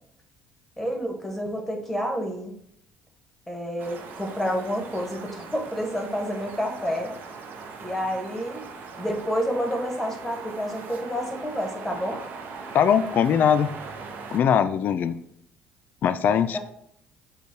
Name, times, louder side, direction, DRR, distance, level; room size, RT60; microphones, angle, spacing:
voice 1, 0.8-2.5 3.5-7.1 7.8-8.7 9.0-12.2 16.5-16.6, equal, 5° left, 2 dB, 1.2 m, -29 dB
sound 1, 3.8-14.4, right 4 dB, 60° right, 0.7 m, -40 dB
voice 2, 12.7-13.7 14.3-15.2 16.0-16.6, left 8 dB, 55° left, 11 dB, 0.3 m, -21 dB
5.3 x 2.2 x 4.3 m, 0.70 s
hypercardioid pair, 60°, 4 cm